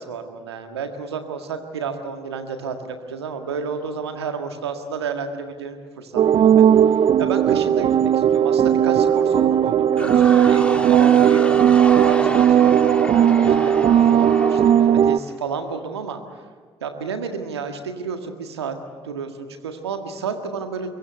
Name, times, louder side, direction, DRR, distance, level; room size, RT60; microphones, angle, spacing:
voice 1, 0.0-6.7 7.2-11.5 12.0-16.2 16.8-18.8 19.0-20.9, right 5 dB, 80° right, 7 dB, 1.8 m, -31 dB
sound 1, 6.2-15.2, right 9 dB, 45° right, 0.6 m, -16 dB
sound 2, 10.0-15.7, left 1 dB, 10° left, 2.2 m, -31 dB
23.0 x 22.0 x 9.3 m, 1.5 s
figure-of-eight pair, 50°, 13 cm